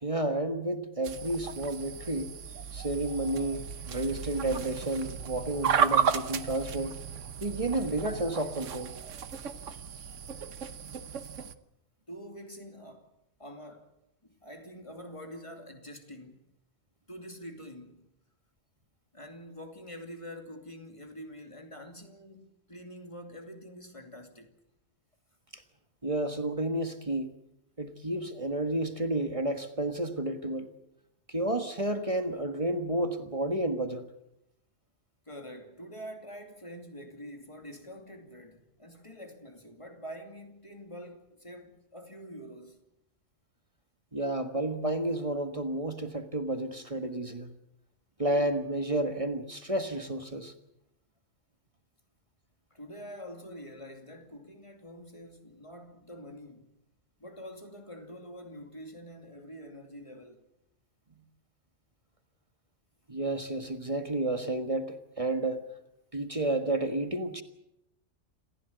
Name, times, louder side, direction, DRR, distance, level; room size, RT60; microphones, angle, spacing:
voice 1, 0.0-2.3 2.7-7.0 7.4-8.9 26.0-27.3 27.8-30.7 31.3-34.1 44.1-47.5 48.2-50.5 63.1-65.7 66.1-67.4, right 1 dB, 30° right, 1.6 m, -31 dB
sound 1, 1.0-11.6, right 7 dB, 80° right, 1.4 m, -34 dB
voice 2, 12.1-13.1 13.4-13.9 14.2-16.5 17.1-18.2 19.1-24.5 35.3-42.8 52.7-56.7 57.2-60.4, equal, 25° left, 2.8 m, -46 dB
27.5 x 15.5 x 8.1 m
omnidirectional pair, 1.2 m